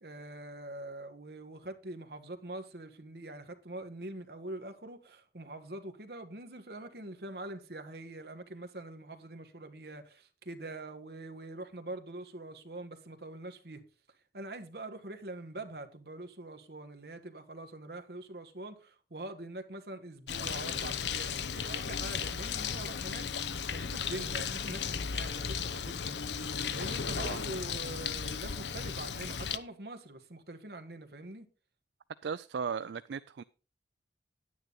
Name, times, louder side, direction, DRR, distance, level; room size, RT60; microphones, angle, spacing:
voice 1, 0.0-13.8 14.3-26.2 26.7-31.4, right 2 dB, 60° right, 1.5 m, -44 dB
Bird, 20.3-29.6, left 6 dB, 85° left, 0.8 m, -35 dB
voice 2, 32.2-33.4, right 6 dB, 80° right, 0.4 m, -36 dB
10.0 x 9.4 x 4.0 m
head